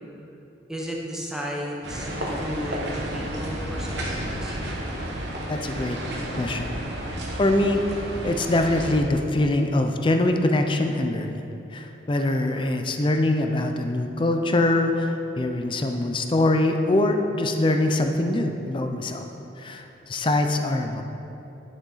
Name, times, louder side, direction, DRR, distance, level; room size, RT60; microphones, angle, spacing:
voice 1, 0.7-4.6, equal, 5° right, -3 dB, 0.9 m, -34 dB
sound 1, 1.8-9.0, right 1 dB, 65° right, 1.2 m, -31 dB
voice 2, 5.5-6.0 6.4-6.7 7.4-19.2 19.6-21.0, left 1 dB, 25° left, 5 dB, 0.4 m, -23 dB
11.0 x 6.4 x 3.9 m, 3.0 s
head